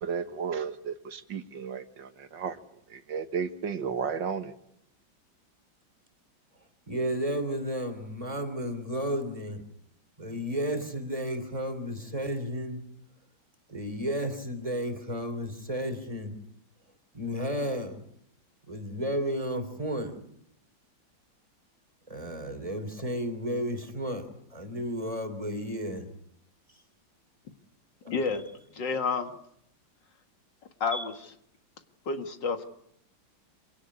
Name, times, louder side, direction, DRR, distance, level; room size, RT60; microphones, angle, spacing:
voice 1, 0.0-2.6 2.9-4.5, right 6 dB, 70° right, 10 dB, 1.9 m, -33 dB
voice 2, 6.9-9.6 10.2-12.8 13.7-16.4 17.1-18.0 18.7-20.2 22.1-26.1 28.0-28.1 30.9-31.0, equal, 15° right, 8 dB, 3.3 m, -32 dB
voice 3, 28.1-28.4 28.7-29.3 30.8-31.1 32.1-32.6, left 4 dB, 65° left, 7 dB, 2.4 m, -29 dB
27.0 x 17.5 x 9.7 m, 0.72 s
omnidirectional pair, 2.1 m